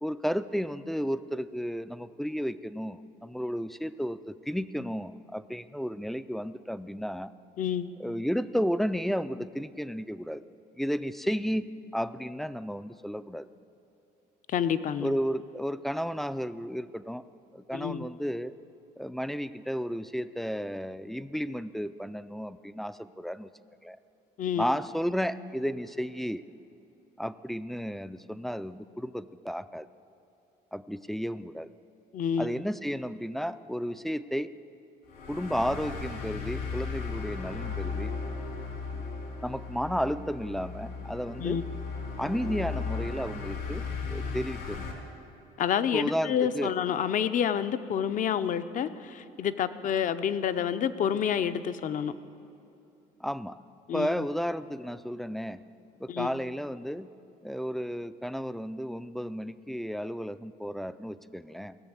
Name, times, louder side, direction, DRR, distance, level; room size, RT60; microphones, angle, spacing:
voice 1, 0.0-7.3 8.0-10.4 10.7-11.7 11.9-13.5 15.0-17.2 17.5-18.5 19.0-23.5 23.8-24.0 24.6-26.4 27.2-29.9 30.7-31.7 32.4-34.5 35.3-38.1 39.4-41.6 42.2-44.8 45.9-46.7 53.2-53.6 53.9-55.6 56.0-57.1 57.4-61.8, equal, ahead, 13 dB, 0.3 m, -33 dB
voice 2, 7.6-7.9 14.5-15.1 17.7-18.1 24.4-24.6 32.1-32.6 41.4-41.6 45.6-52.1 53.9-54.3 56.1-56.3, left 8 dB, 50° left, 12 dB, 0.6 m, -28 dB
sound 1, 35.1-44.9, left 5 dB, 80° left, 2.8 m, -36 dB
17.0 x 6.9 x 8.1 m, 2.8 s
cardioid pair, 110°, 17 cm